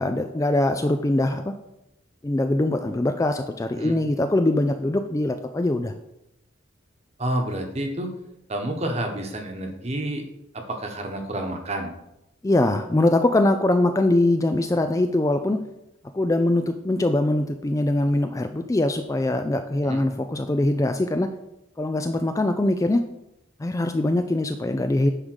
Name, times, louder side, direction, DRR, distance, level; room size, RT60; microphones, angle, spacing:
voice 1, 0.0-1.5 2.2-5.9 12.4-15.6 16.1-21.3 21.8-23.0 23.6-25.1, left 1 dB, 15° left, 7 dB, 0.3 m, -22 dB
voice 2, 7.2-8.1 8.5-10.2 10.5-11.9 19.8-20.0, right 1 dB, 30° right, 4 dB, 1.1 m, -29 dB
9.8 x 3.7 x 6.3 m, 0.88 s
head